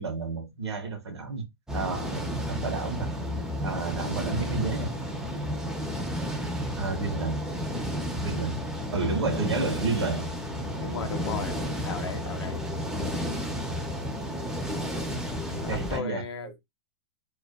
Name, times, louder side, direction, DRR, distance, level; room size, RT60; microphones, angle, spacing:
voice 1, 0.0-1.4 1.7-3.1 3.6-4.9 6.8-7.4 8.2-8.6 8.9-10.3 15.5-16.5, right 3 dB, 90° right, 0.8 m, -31 dB
sound 1, 1.7-16.0, equal, 5° right, 0.6 m, -32 dB
voice 2, 10.8-12.7 15.4-16.6, left 4 dB, 85° left, 0.6 m, -36 dB
2.5 x 2.4 x 2.2 m
hypercardioid pair, 110°, 13 cm